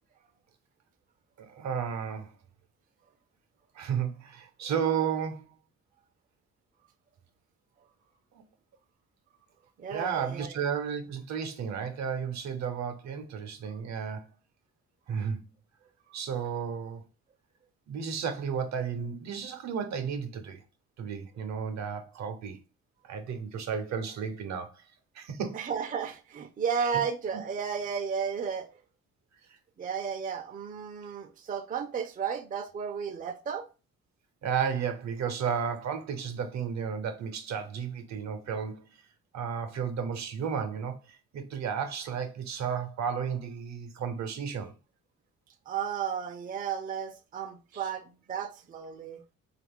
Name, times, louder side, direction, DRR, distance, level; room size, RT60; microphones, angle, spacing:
voice 1, 1.4-2.3 3.7-5.5 9.9-14.3 15.1-15.4 16.1-17.0 17.9-20.6 21.0-22.6 23.0-24.8 25.1-25.6 26.8-27.0 34.4-38.8 39.3-44.7, right 7 dB, 65° right, 0.7 m, -33 dB
voice 2, 9.8-10.6 25.5-28.7 29.8-33.7 45.7-49.2, right 7 dB, 30° right, 0.4 m, -33 dB
2.7 x 2.4 x 3.6 m
cardioid pair, 90°, 30 cm